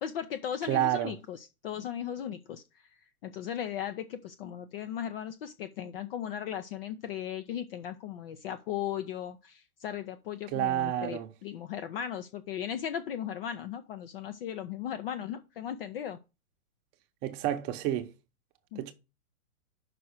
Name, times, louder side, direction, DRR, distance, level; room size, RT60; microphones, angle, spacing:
voice 1, 0.0-2.9 3.2-16.2 18.7-18.9, left 9 dB, 40° left, 0.6 m, -37 dB
voice 2, 0.7-1.1 10.5-11.3 17.2-18.1 18.8-18.9, right 12 dB, 30° right, 0.9 m, -29 dB
5.9 x 4.6 x 6.4 m
hypercardioid pair, 135°, 45 cm